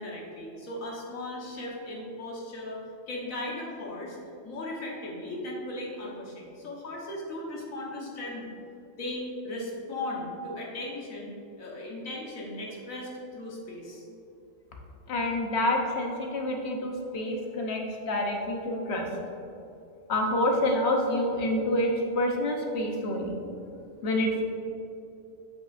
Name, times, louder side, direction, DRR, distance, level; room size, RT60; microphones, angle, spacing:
voice 1, 0.0-2.8 3.1-4.2 4.4-8.5 9.0-11.3 11.6-14.0, left 1 dB, 90° left, -3 dB, 1.6 m, -37 dB
voice 2, 15.1-19.1 20.1-23.3 24.0-24.4, left 1 dB, 60° left, 1 dB, 1.1 m, -27 dB
8.0 x 5.8 x 2.5 m, 2.7 s
omnidirectional pair, 1.4 m